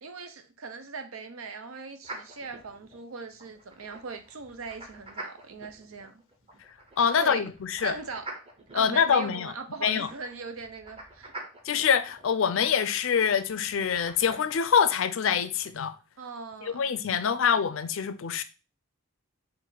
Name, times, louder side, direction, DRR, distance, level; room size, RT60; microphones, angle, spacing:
voice 1, 0.0-6.2 7.2-7.4 7.8-8.3 8.7-11.3 16.2-16.9, right 4 dB, 90° right, 0.7 m, -40 dB
sound 1, 2.0-14.4, right 2 dB, 30° right, 0.9 m, -47 dB
voice 2, 7.0-7.9 8.7-9.5 9.8-10.1 11.6-15.9 16.6-18.4, left 7 dB, 70° left, 0.4 m, -25 dB
4.6 x 2.5 x 3.9 m
head